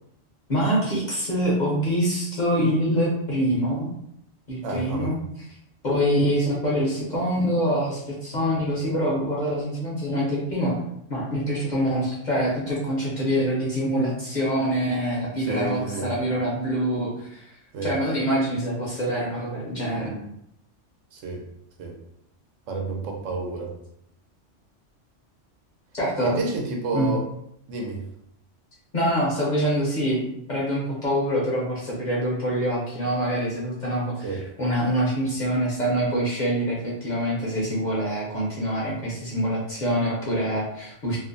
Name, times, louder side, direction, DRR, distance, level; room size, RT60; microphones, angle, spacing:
voice 1, 0.5-3.9 4.5-5.5 5.8-10.8 11.1-17.5 17.8-20.1 25.9-26.3 26.9-27.1 28.9-30.2 30.5-41.2, equal, 50° left, -5 dB, 0.6 m, -25 dB
voice 2, 4.6-5.1 15.4-16.1 17.7-17.9 19.9-20.2 21.1-21.4 21.8-22.0 22.7-23.7 26.2-27.2 27.7-28.0 34.2-34.4, right 3 dB, 80° right, 1 dB, 0.9 m, -30 dB
2.5 x 2.0 x 2.5 m, 0.76 s
omnidirectional pair, 1.3 m